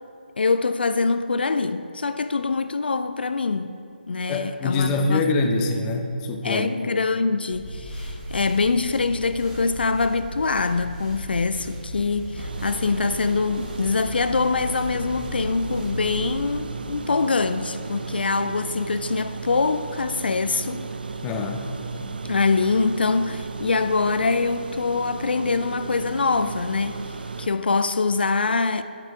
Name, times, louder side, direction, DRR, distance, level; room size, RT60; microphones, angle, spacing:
voice 1, 0.4-3.7 4.1-5.2 6.4-20.9 22.3-27.0 27.4-28.8, left 4 dB, 65° left, 0.4 m, -24 dB
voice 2, 4.3-6.7 21.2-21.7, left 3 dB, 15° left, 0.6 m, -24 dB
sound 1, 7.5-16.5, equal, 10° right, 2.3 m, -35 dB
sound 2, 12.4-27.5, right 4 dB, 60° right, 0.7 m, -35 dB
9.2 x 9.1 x 4.6 m
figure-of-eight pair, 150°, 6 cm